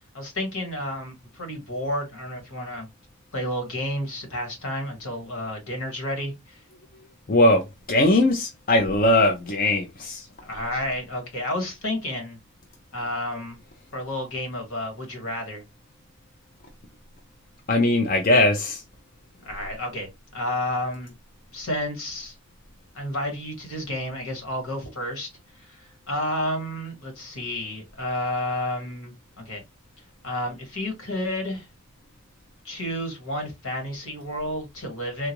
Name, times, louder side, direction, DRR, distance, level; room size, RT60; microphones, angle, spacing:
voice 1, 0.1-2.9 3.3-6.6 10.4-12.4 12.9-13.6 13.9-15.6 19.4-21.1 21.5-22.3 22.9-25.3 25.5-29.6 30.2-31.7 32.6-35.3, left 1 dB, 75° left, 1.5 m, -31 dB
voice 2, 7.3-7.6 7.9-10.3 17.7-18.8, left 1 dB, 45° left, 0.5 m, -20 dB
3.7 x 2.4 x 2.9 m
head